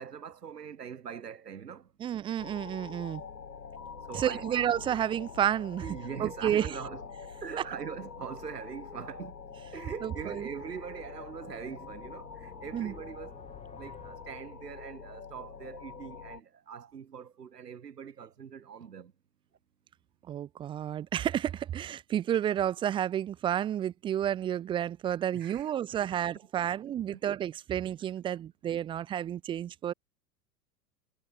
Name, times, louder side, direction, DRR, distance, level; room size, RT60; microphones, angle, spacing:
voice 1, 0.0-1.9 4.0-4.6 5.8-9.4 9.7-13.5 13.8-19.1 25.3-25.7 27.1-27.2, right 7 dB, 70° right, 2.8 m, -42 dB
voice 2, 2.0-3.2 4.1-5.9 6.2-6.7 10.0-10.5 12.7-12.9 20.3-29.9, right 10 dB, 10° right, 0.4 m, -31 dB
sound 1, 2.3-15.2, left 5 dB, 15° left, 4.1 m, -59 dB
sound 2, 2.4-16.4, left 6 dB, 75° left, 4.8 m, -45 dB
figure-of-eight pair, 90°, 49 cm